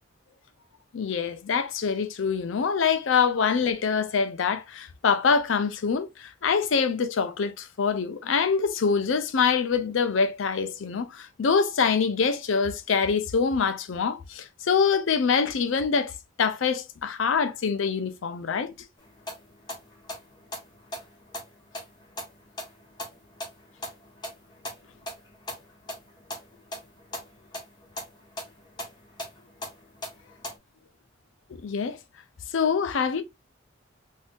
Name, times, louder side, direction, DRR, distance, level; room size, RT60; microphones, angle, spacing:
voice 1, 0.9-16.1 16.4-18.7 31.5-32.0 32.5-33.2, left 5 dB, 70° left, 0.5 m, -25 dB
sound 1, 19.0-30.6, left 1 dB, 20° left, 0.9 m, -41 dB
3.6 x 2.6 x 2.4 m
head